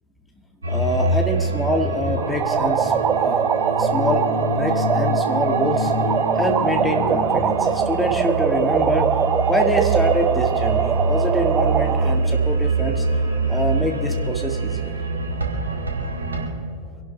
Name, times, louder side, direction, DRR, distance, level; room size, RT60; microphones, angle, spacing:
sound 1, 0.6-16.5, right 2 dB, 75° right, 2.1 m, -25 dB
voice 1, 0.7-2.9 3.2-3.4 3.7-5.9 6.4-9.2 9.5-13.0 13.5-15.0, equal, 5° left, 3 dB, 1.8 m, -25 dB
sound 2, 2.2-12.1, right 7 dB, 25° right, 0.7 m, -22 dB
25.5 x 11.5 x 3.4 m, 2.2 s
figure-of-eight pair, 90°, 0 cm